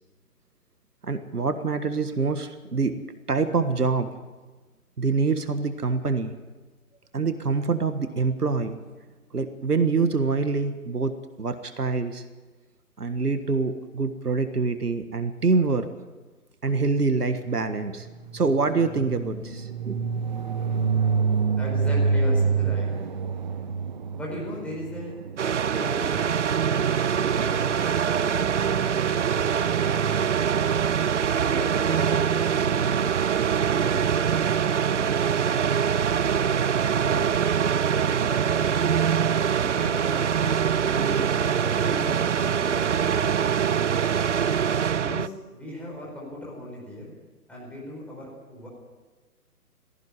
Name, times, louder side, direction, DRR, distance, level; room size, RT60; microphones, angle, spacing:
voice 1, 1.0-4.1 5.0-6.3 7.1-8.8 9.3-12.2 13.0-15.9 16.6-18.1 18.3-20.0, right 4 dB, 75° right, 10 dB, 1.7 m, -25 dB
sound 1, 17.4-27.3, right 5 dB, 30° right, 1.1 m, -27 dB
voice 2, 21.6-22.9 24.1-25.2 25.6-26.3 27.1-28.9 29.3-30.1 31.4-33.1 33.6-34.4 34.8-35.7 36.9-38.7 39.5-43.4 44.9-47.1 47.5-48.7, left 1 dB, 5° left, -5 dB, 5.0 m, -38 dB
sound 2, 25.4-45.3, right 7 dB, 50° right, 0.5 m, -23 dB
17.5 x 14.5 x 9.9 m, 1.3 s
figure-of-eight pair, 140°, 46 cm